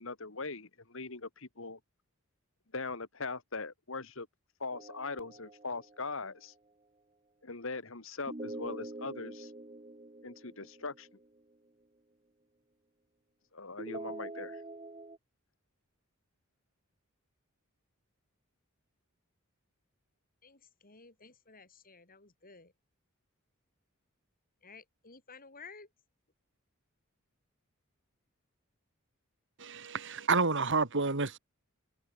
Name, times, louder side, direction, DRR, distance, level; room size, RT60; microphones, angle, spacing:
voice 1, 0.0-1.8 2.7-4.3 4.6-6.5 7.4-9.5 10.2-11.1 13.5-14.6, left 3 dB, 65° left, 2.3 m, -40 dB
sound 1, 4.7-6.3 8.3-11.4 13.8-15.2, right 2 dB, 25° right, 1.7 m, -45 dB
voice 2, 20.4-22.7 24.6-25.9, left 4 dB, 40° left, 6.8 m, -54 dB
voice 3, 29.6-31.4, right 4 dB, 60° right, 2.4 m, -29 dB
head